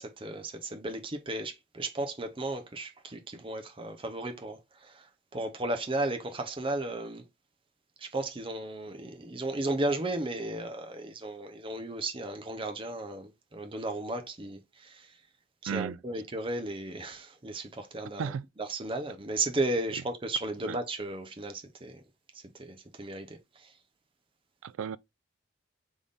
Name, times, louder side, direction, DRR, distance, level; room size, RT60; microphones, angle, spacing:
voice 1, 0.0-5.1 5.3-7.2 8.0-15.1 15.6-22.0 22.5-23.7, right 2 dB, 25° right, 0.7 m, -35 dB
voice 2, 15.7-16.0 18.2-18.4 20.7-20.8 24.6-25.0, right 7 dB, 85° right, 0.3 m, -33 dB
3.5 x 3.4 x 3.9 m
head